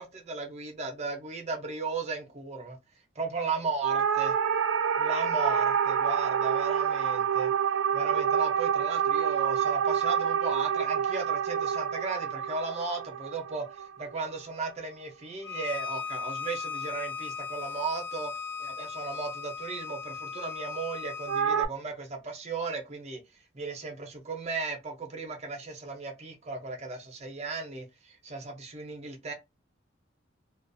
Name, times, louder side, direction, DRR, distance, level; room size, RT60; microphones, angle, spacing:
voice 1, 0.0-2.8 3.2-4.4 5.0-7.5 7.9-18.3 18.6-23.2 23.5-29.3, right 4 dB, 35° right, 0.6 m, -36 dB
sound 1, 3.8-14.3 21.3-21.6, right 7 dB, 85° right, 0.3 m, -27 dB
Bowed string instrument, 15.4-21.5, left 5 dB, 70° left, 0.9 m, -37 dB
2.4 x 2.3 x 2.5 m
head